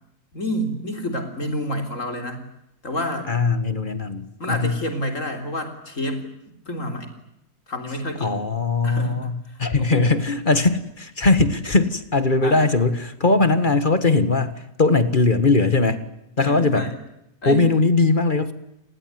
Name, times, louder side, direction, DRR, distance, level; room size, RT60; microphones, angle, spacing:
voice 1, 0.3-2.5 2.8-3.3 4.4-7.1 7.7-8.3 8.8-9.2 9.5-10.2 12.4-12.7 16.4-17.0 17.4-17.7, left 1 dB, 55° left, 6 dB, 4.0 m, -29 dB
voice 2, 3.3-4.8 8.2-16.0 16.4-16.9 17.4-18.5, left 3 dB, 35° left, 12 dB, 1.8 m, -20 dB
29.0 x 21.0 x 9.5 m, 0.83 s
omnidirectional pair, 1.6 m